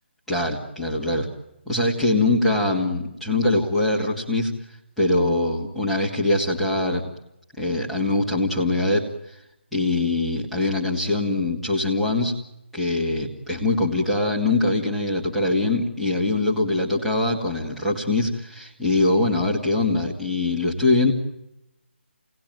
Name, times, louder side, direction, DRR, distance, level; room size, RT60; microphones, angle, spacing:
voice 1, 0.3-1.3 1.7-4.5 5.0-7.1 7.6-9.4 9.7-12.4 12.7-21.1, left 2 dB, ahead, -7 dB, 2.1 m, -23 dB
28.5 x 19.5 x 9.3 m, 0.92 s
figure-of-eight pair, 165°, 7 cm